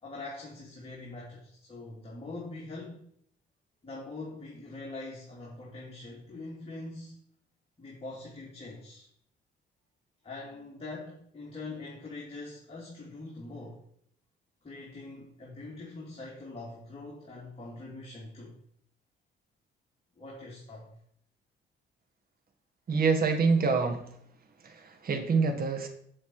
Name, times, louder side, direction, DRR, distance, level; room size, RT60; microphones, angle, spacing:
voice 1, 0.0-3.1 3.8-7.2 7.8-9.1 10.2-13.8 14.6-18.6 20.2-20.9, left 2 dB, 30° left, -4 dB, 3.0 m, -43 dB
voice 2, 22.9-24.0 24.6-25.9, right 4 dB, 50° right, 5 dB, 1.7 m, -26 dB
8.6 x 7.6 x 4.8 m, 0.65 s
cardioid pair, 90°, 20 cm